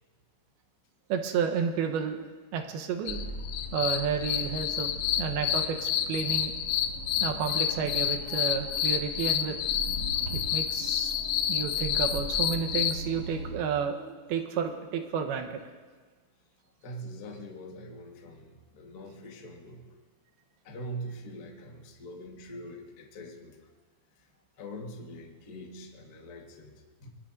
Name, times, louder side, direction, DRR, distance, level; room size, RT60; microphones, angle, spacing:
voice 1, 1.1-2.3 2.5-3.2 3.7-4.9 5.2-6.5 7.2-9.6 10.3-11.1 11.5-15.6, right 6 dB, 80° right, 5 dB, 3.0 m, -31 dB
sound 1, 3.1-13.0, left 10 dB, 85° left, 2.6 m, -29 dB
sound 2, 3.1-13.6, right 1 dB, 50° right, 2.1 m, -40 dB
voice 2, 16.8-20.0 20.6-23.7 24.1-24.3 24.6-27.1, right 1 dB, 65° left, 0 dB, 0.9 m, -43 dB
25.5 x 21.0 x 2.6 m, 1.4 s
omnidirectional pair, 4.4 m